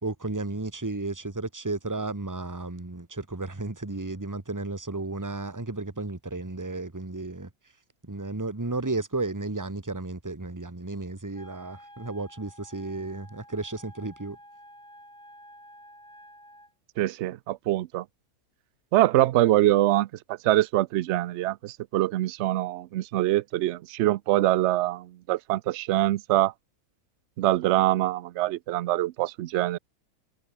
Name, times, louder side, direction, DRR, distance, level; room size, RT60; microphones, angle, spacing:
voice 1, 0.0-7.5 8.0-14.4, right 2 dB, 10° right, 1.6 m, -33 dB
Wind instrument woodwind instrument, 11.3-16.7, equal, 5° left, 3.6 m, -51 dB
voice 2, 17.0-18.1 18.9-26.5 27.4-29.8, right 15 dB, 65° right, 0.7 m, -24 dB
omnidirectional pair, 1.6 m